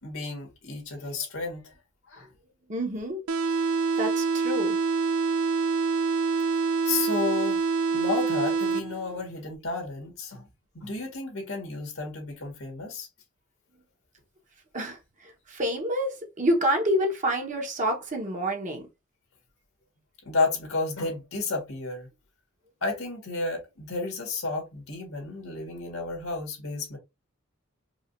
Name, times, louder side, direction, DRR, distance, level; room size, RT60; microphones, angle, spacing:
voice 1, 0.0-1.7 2.1-2.3 6.8-7.6 7.9-10.5 10.7-13.1 20.2-22.1 22.8-27.0, left 3 dB, 80° left, 1.8 m, -32 dB
voice 2, 2.7-3.2 4.0-4.8 14.7-18.9, equal, 35° right, 1.1 m, -28 dB
sound 1, 3.3-9.3, right 4 dB, 80° right, 0.3 m, -26 dB
4.8 x 2.5 x 2.6 m
head